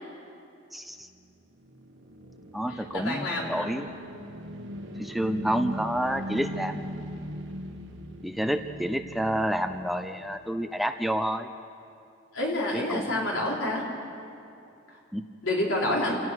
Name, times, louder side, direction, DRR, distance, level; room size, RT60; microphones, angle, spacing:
voice 1, 0.7-1.1 2.5-3.9 5.0-6.8 8.2-11.5 12.7-13.3 15.1-15.2, equal, ahead, 7 dB, 0.5 m, -29 dB
sound 1, 1.2-10.4, equal, 65° right, 1.8 m, -39 dB
voice 2, 2.7-3.6 12.3-13.8 14.9-15.0 15.4-16.2, left 1 dB, 75° left, -3 dB, 4.2 m, -28 dB
28.5 x 17.5 x 6.2 m, 2.6 s
head